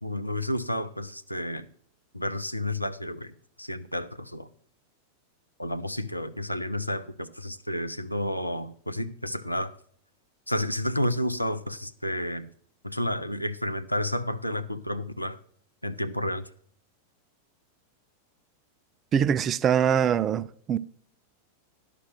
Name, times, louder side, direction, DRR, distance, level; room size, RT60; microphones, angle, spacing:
voice 1, 0.0-1.7 2.1-3.3 3.6-4.5 5.6-9.8 10.5-12.5 12.8-15.4 15.8-16.4, left 1 dB, 90° left, 0.5 m, -31 dB
voice 2, 19.1-20.8, right 8 dB, 30° right, 0.3 m, -23 dB
11.5 x 6.1 x 5.9 m
figure-of-eight pair, 90°, 0 cm